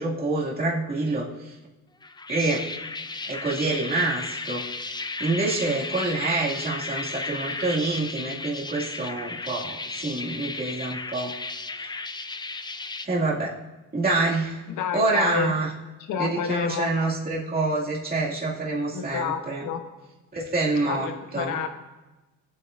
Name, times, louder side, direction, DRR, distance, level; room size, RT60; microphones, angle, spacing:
voice 1, 0.0-1.5 2.3-2.7 3.3-4.6 5.2-11.4 13.0-13.6 13.9-14.6 14.9-15.7 16.2-19.7 20.3-21.6, right 3 dB, 30° right, -5 dB, 2.5 m, -27 dB
sound 1, 2.0-13.1, left 3 dB, 15° left, 0.5 m, -34 dB
voice 2, 14.7-15.5 16.1-16.9 18.9-19.8 20.8-21.7, left 7 dB, 80° left, 6 dB, 1.2 m, -29 dB
21.5 x 8.1 x 2.7 m, 1.1 s
cardioid pair, 90°, 30 cm